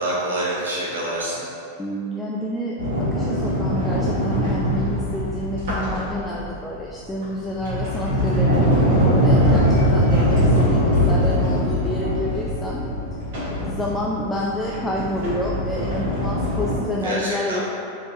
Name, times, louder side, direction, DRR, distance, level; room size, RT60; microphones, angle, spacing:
voice 1, 0.0-1.4 10.1-10.4 17.0-17.6, right 1 dB, 70° right, -7 dB, 1.1 m, -26 dB
voice 2, 1.8-12.8 13.7-17.6, left 1 dB, 10° left, -4 dB, 0.3 m, -29 dB
Sliding door, 2.8-6.6 7.2-16.8, equal, 55° right, 1.3 m, -21 dB
4.2 x 3.1 x 2.7 m, 2.5 s
figure-of-eight pair, 90°, 0 cm